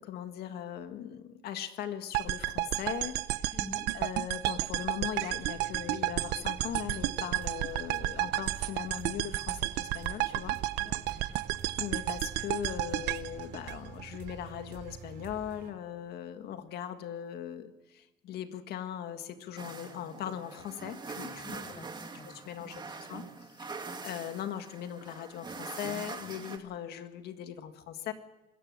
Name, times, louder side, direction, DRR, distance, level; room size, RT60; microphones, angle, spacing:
voice 1, 0.0-3.5 3.9-10.6 11.8-21.6 22.3-23.7 24.0-28.1, left 10 dB, 75° left, 8 dB, 1.9 m, -39 dB
sound 1, 2.1-14.3, right 17 dB, 90° right, 0.8 m, -32 dB
voice 2, 3.5-3.9 10.8-11.4 21.4-22.9, left 1 dB, 30° left, 6 dB, 5.8 m, -48 dB
sound 2, 5.3-15.7, right 7 dB, 65° right, 3.9 m, -49 dB
sound 3, 19.6-26.6, right 4 dB, 25° right, 2.2 m, -43 dB
25.0 x 15.0 x 7.6 m, 1.0 s
cardioid pair, 110°, 17 cm